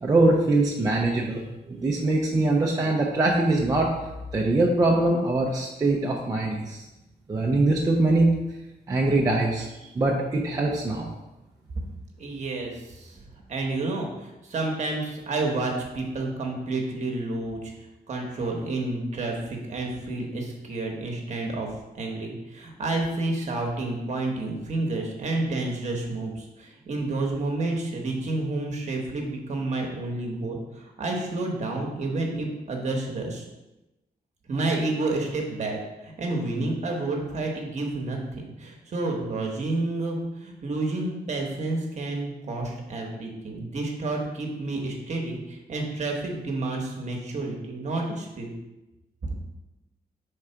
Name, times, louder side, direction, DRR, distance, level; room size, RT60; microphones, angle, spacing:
voice 1, 0.0-1.4 1.7-3.9 4.3-6.9 7.3-8.4 8.9-9.7 9.9-11.1, right 2 dB, 20° right, -2 dB, 0.5 m, -22 dB
voice 2, 12.2-13.2 13.5-17.7 18.1-33.5 34.5-48.5, right 2 dB, 45° right, 1 dB, 1.1 m, -30 dB
4.7 x 3.6 x 5.5 m, 0.99 s
wide cardioid pair, 175°, 17 cm